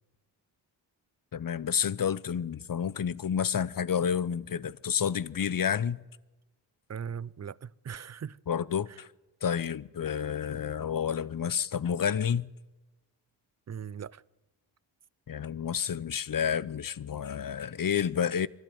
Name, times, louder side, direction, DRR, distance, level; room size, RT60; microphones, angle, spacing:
voice 1, 1.3-6.0 8.5-9.1 9.4-12.5 15.3-18.5, left 8 dB, 40° left, 0.8 m, -30 dB
voice 2, 6.9-8.4 8.9-9.0 13.7-14.2, right 7 dB, 35° right, 0.6 m, -39 dB
23.5 x 12.0 x 9.1 m
supercardioid pair, 40°, 49 cm